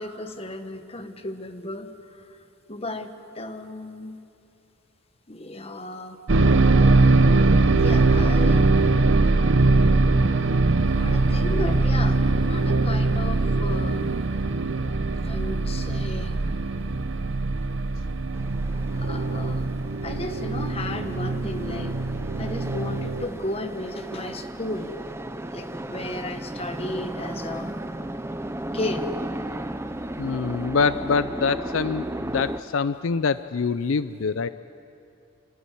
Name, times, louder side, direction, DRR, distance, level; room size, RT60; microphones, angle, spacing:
voice 1, 0.0-2.4 2.7-4.2 5.3-6.2 7.7-8.7 10.8-14.2 15.2-16.4 18.9-19.7 20.0-22.0 22.4-25.0 25.5-27.7 28.7-29.1, left 2 dB, 30° left, 7 dB, 1.3 m, -34 dB
sound 1, 6.3-23.3, right 3 dB, 60° right, 0.8 m, -21 dB
sound 2, 18.3-32.6, right 1 dB, 15° right, 0.6 m, -35 dB
voice 2, 30.2-34.5, left 5 dB, 75° left, 14 dB, 0.5 m, -25 dB
27.5 x 13.5 x 10.0 m, 2.6 s
head